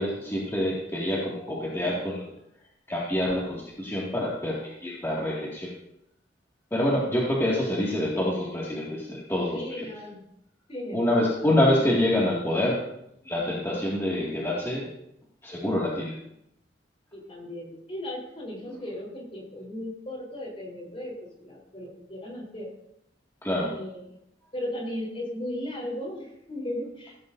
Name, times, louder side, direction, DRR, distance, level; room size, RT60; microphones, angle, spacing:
voice 1, 0.0-2.3 2.9-5.7 6.7-9.9 10.9-12.8 13.2-14.9 15.4-16.2 23.4-23.7, left 1 dB, 15° left, -6 dB, 2.2 m, -26 dB
voice 2, 9.5-10.2 10.7-11.3 17.1-22.7 23.6-24.0 24.5-27.2, left 1 dB, 35° left, 0 dB, 3.9 m, -36 dB
16.5 x 14.5 x 2.7 m, 0.78 s
head